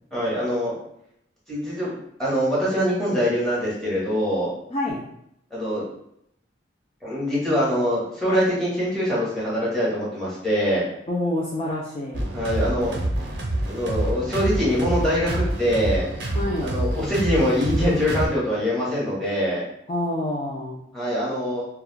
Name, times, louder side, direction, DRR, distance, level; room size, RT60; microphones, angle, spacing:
voice 1, 0.1-0.7 1.5-1.9 2.2-4.5 5.5-5.8 7.0-10.8 12.3-12.9 13.7-16.1 16.6-19.6 20.9-21.6, equal, ahead, -8 dB, 0.9 m, -23 dB
voice 2, 4.7-5.0 11.1-12.3 16.3-16.7 19.9-20.8, left 1 dB, 30° left, -5 dB, 0.3 m, -27 dB
sound 1, 12.1-18.3, right 1 dB, 65° right, 0.6 m, -27 dB
2.3 x 2.2 x 3.2 m, 0.75 s
head